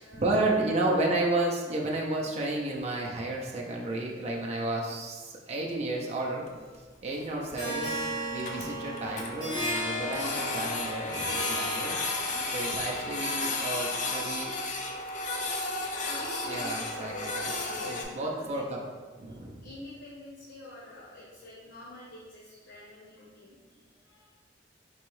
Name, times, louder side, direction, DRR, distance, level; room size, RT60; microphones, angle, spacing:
voice 1, 0.0-6.6 7.0-8.0 8.3-11.9 12.5-14.5 16.5-17.4 17.8-18.8 19.2-19.6, right 2 dB, 40° right, -1 dB, 0.5 m, -32 dB
Printer, 6.5-6.6 6.7-6.8 7.2-7.3 7.6-7.7 8.0-8.1 8.3-9.3 9.7-18.0, left 2 dB, 45° left, 0.5 m, -33 dB
Harp, 7.6-12.6, equal, 25° left, 1.2 m, -35 dB
voice 2, 11.7-13.7 16.0-18.6 19.6-24.3, left 1 dB, 80° left, -6 dB, 0.8 m, -47 dB
4.5 x 3.0 x 3.1 m, 1.4 s
head